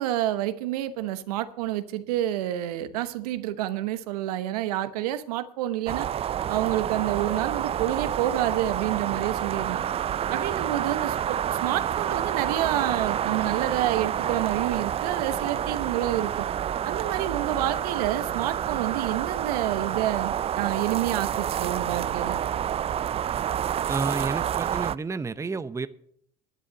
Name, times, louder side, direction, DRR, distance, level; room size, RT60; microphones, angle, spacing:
voice 1, 0.0-6.1 6.5-9.8 10.3-16.5 16.8-22.4, right 13 dB, 80° right, 1.0 m, -28 dB
sound 1, 5.9-25.0, right 10 dB, 30° right, 0.4 m, -28 dB
voice 2, 23.9-25.9, right 4 dB, 15° right, 0.8 m, -30 dB
11.0 x 10.0 x 6.6 m
hypercardioid pair, 75°, 20 cm